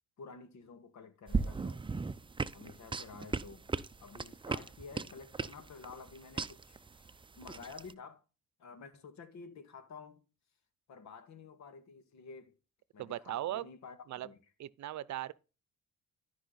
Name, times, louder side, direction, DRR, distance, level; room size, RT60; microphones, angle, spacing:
voice 1, 0.2-1.8 2.5-3.7 4.0-8.2 8.6-10.2 10.9-12.6 12.9-14.4, left 5 dB, 65° left, 2.0 m, -51 dB
sound 1, 1.3-7.9, right 4 dB, 15° right, 0.6 m, -37 dB
voice 2, 13.0-13.7 14.1-14.3 14.6-15.3, right 13 dB, 65° right, 0.7 m, -38 dB
13.0 x 5.5 x 4.0 m
cardioid pair, 90°, 30 cm